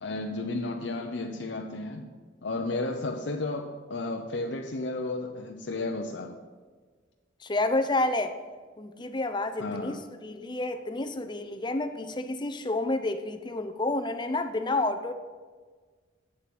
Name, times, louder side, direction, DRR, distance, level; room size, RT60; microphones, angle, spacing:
voice 1, 0.0-2.1 2.4-6.4 9.6-10.0, left 2 dB, 70° left, 2 dB, 0.7 m, -33 dB
voice 2, 7.4-8.4 8.8-10.0 10.2-15.1, left 2 dB, 25° left, 8 dB, 0.6 m, -29 dB
7.8 x 6.9 x 7.7 m, 1.5 s
head